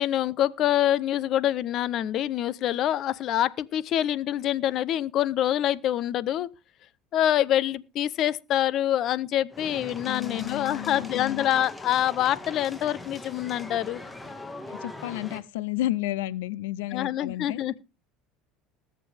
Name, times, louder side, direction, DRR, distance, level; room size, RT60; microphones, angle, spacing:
voice 1, 0.0-6.5 7.1-14.0 16.9-17.8, left 12 dB, 55° left, 0.8 m, -26 dB
sound 1, 9.5-15.4, left 2 dB, 15° left, 1.8 m, -41 dB
voice 2, 10.0-11.4 14.7-17.6, left 15 dB, 85° left, 0.6 m, -32 dB
20.5 x 7.6 x 3.5 m
supercardioid pair, 100°, 0 cm